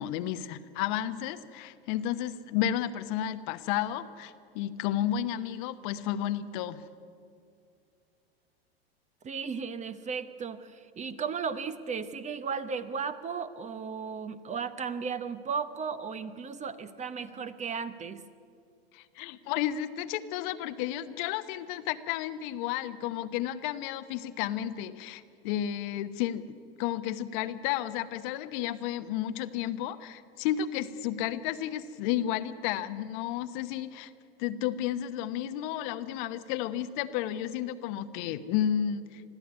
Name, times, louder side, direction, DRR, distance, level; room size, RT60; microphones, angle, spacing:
voice 1, 0.0-6.8 18.9-34.1 34.4-39.2, left 11 dB, 55° left, 11 dB, 1.0 m, -32 dB
voice 2, 9.2-18.2, right 6 dB, 25° right, 12 dB, 0.9 m, -35 dB
21.5 x 14.0 x 9.7 m, 2.4 s
hypercardioid pair, 95°, 30 cm